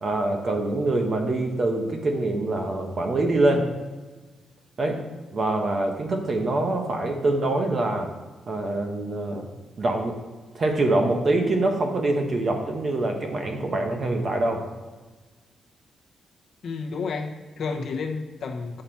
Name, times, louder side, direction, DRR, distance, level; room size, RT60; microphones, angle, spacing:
voice 1, 0.0-3.7 4.8-5.0 5.3-8.1 8.5-9.5 9.8-10.2 10.5-14.6, right 2 dB, 35° right, 4 dB, 1.0 m, -24 dB
voice 2, 16.6-18.8, left 4 dB, 50° left, 2 dB, 0.9 m, -31 dB
8.8 x 5.7 x 4.5 m, 1.3 s
wide cardioid pair, 170°, 0 cm